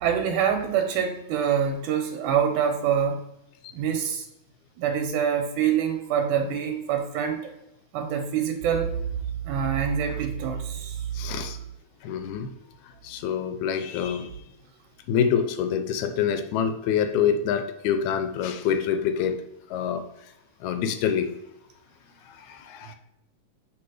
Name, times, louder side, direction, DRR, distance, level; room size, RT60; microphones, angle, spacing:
voice 1, 0.0-3.2 3.7-4.3 4.8-7.5 7.9-9.0 9.5-11.0, right 8 dB, 85° right, 5 dB, 2.1 m, -25 dB
voice 2, 11.1-11.6 12.0-12.5 12.8-14.3 15.1-19.4 19.7-20.0 20.6-21.3 22.2-23.0, left 8 dB, 80° left, 8 dB, 1.9 m, -26 dB
6.2 x 3.2 x 4.8 m, 0.84 s
omnidirectional pair, 3.5 m